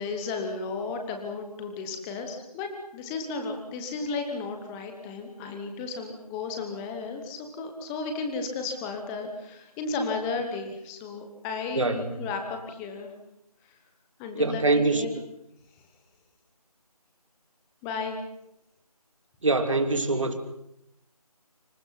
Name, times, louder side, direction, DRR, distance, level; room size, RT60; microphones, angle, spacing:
voice 1, 0.0-13.1 14.2-15.1 17.8-18.2, left 4 dB, 5° left, 5 dB, 1.1 m, -34 dB
voice 2, 11.7-12.1 14.3-15.1 19.4-20.4, right 3 dB, 55° right, 7 dB, 3.1 m, -24 dB
28.0 x 26.5 x 5.8 m, 0.81 s
figure-of-eight pair, 165°, 20 cm